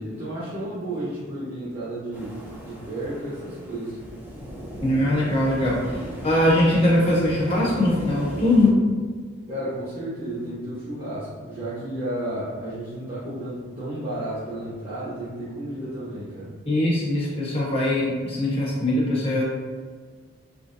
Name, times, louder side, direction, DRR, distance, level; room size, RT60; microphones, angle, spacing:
voice 1, 0.0-2.4 2.6-4.0 9.5-16.5, right 1 dB, 30° right, -11 dB, 1.0 m, -32 dB
sound 1, 2.1-8.7, equal, 10° right, 0.6 m, -36 dB
voice 2, 4.8-8.8 16.7-19.4, left 1 dB, 30° left, -6 dB, 0.8 m, -21 dB
3.8 x 3.1 x 2.6 m, 1.5 s
head